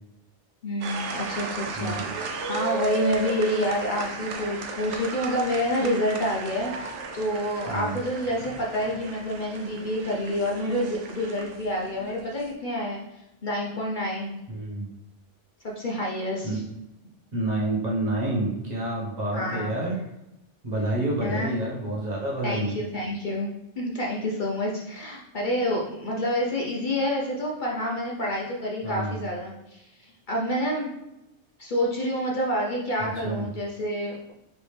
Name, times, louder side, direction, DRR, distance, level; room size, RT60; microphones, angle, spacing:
voice 1, 0.6-13.0 13.4-14.4 15.6-16.6 19.3-19.7 21.2-21.5 22.4-23.5 23.8-30.9 31.6-34.3, left 1 dB, 50° left, -3 dB, 0.7 m, -28 dB
sound 1, 0.8-12.5, right 5 dB, 90° right, 1.0 m, -35 dB
voice 2, 1.7-2.1 7.7-8.0 14.5-14.9 16.4-16.6 17.3-20.0 20.6-22.8 28.8-29.2 33.0-33.5, right 1 dB, 40° right, -5 dB, 1.1 m, -28 dB
4.9 x 3.3 x 3.2 m, 0.91 s
omnidirectional pair, 1.2 m